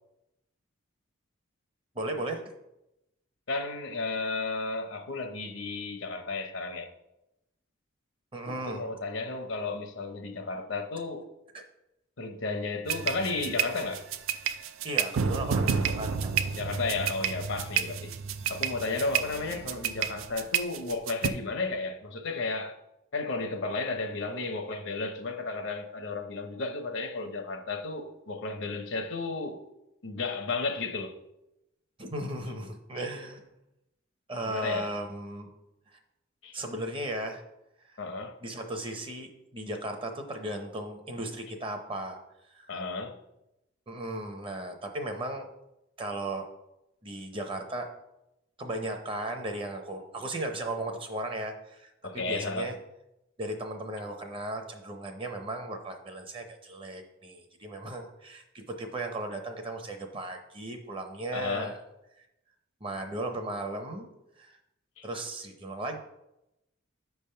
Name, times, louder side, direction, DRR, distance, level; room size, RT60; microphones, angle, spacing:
voice 1, 1.9-2.4 8.3-8.8 11.5-11.6 14.8-16.3 32.0-33.4 34.3-35.5 36.5-37.4 38.4-42.2 42.5-42.8 43.9-45.5 46.0-46.4 47.0-47.9 48.6-52.7 53.4-61.8 62.8-64.1 64.4-64.5 65.0-66.0, right 1 dB, 25° right, 0.8 m, -36 dB
voice 2, 3.5-6.9 8.6-11.3 12.2-14.1 16.6-18.1 18.5-22.8 23.1-29.6 30.0-31.2 34.5-34.9 36.4-36.6 38.0-38.4 42.7-43.1 52.0-52.7 61.3-61.8 65.0-65.1, left 3 dB, 65° left, 0.8 m, -33 dB
sound 1, 12.9-21.3, right 7 dB, 80° right, 0.4 m, -30 dB
8.2 x 3.5 x 5.6 m
head